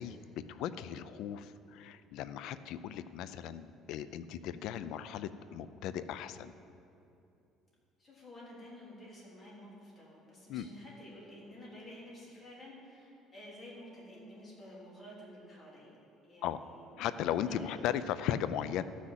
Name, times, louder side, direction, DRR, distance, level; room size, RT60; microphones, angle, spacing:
voice 1, 0.0-6.6 10.5-10.7 16.4-16.6 17.0-18.8, left 10 dB, 65° left, 13 dB, 0.5 m, -37 dB
voice 2, 8.0-16.0 16.2-16.9 17.4-17.8, left 1 dB, 25° left, -6 dB, 3.4 m, -51 dB
13.5 x 6.2 x 7.4 m, 2.7 s
cardioid pair, 145°, 0 cm